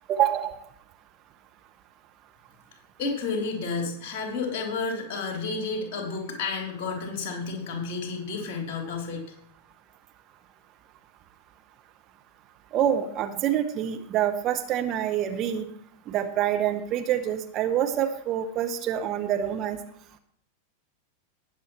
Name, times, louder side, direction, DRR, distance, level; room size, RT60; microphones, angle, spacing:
voice 1, 0.1-0.5 12.7-15.7 16.1-19.8, right 10 dB, 35° right, 6 dB, 1.0 m, -26 dB
voice 2, 3.0-9.2, left 4 dB, 40° left, 1 dB, 3.6 m, -31 dB
19.5 x 7.4 x 3.2 m, 0.66 s
figure-of-eight pair, 90°, 0 cm